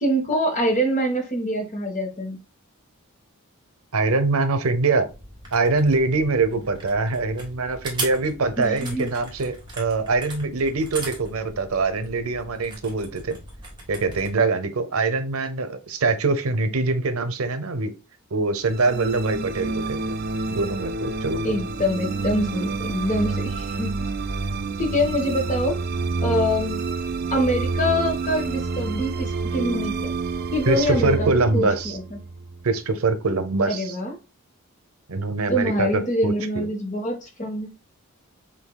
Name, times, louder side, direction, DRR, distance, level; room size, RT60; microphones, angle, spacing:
voice 1, 0.0-2.4 8.6-9.2 21.4-24.0 24.8-25.8 26.2-26.8 27.3-30.1 30.5-32.2 33.7-34.1 35.5-37.7, equal, 35° left, 1.2 m, -25 dB
voice 2, 3.9-5.1 5.5-13.4 13.9-17.9 18.3-20.2 20.5-21.4 30.7-32.0 32.6-34.0 35.1-36.7, right 3 dB, 80° right, 0.7 m, -23 dB
sound 1, 5.1-14.3, right 2 dB, 20° right, 1.5 m, -39 dB
sound 2, 18.6-33.0, right 3 dB, 45° right, 0.5 m, -28 dB
7.0 x 2.7 x 2.2 m
head